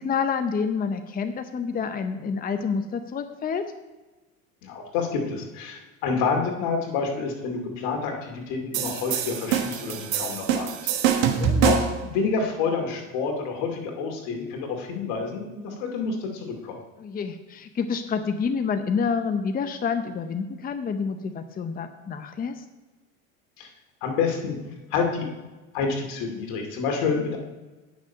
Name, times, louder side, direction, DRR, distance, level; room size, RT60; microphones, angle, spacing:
voice 1, 0.0-3.6 11.1-11.8 17.0-22.6, left 5 dB, 20° left, 8 dB, 0.7 m, -28 dB
voice 2, 4.6-11.3 11.6-11.8 12.0-16.8 23.6-23.7 24.0-24.6 24.9-25.3 25.7-27.4, left 5 dB, 70° left, 2 dB, 2.5 m, -28 dB
sound 1, 8.7-12.0, right 8 dB, 80° right, 1.3 m, -24 dB
9.5 x 6.4 x 5.6 m, 1.2 s
supercardioid pair, 100°, 40 cm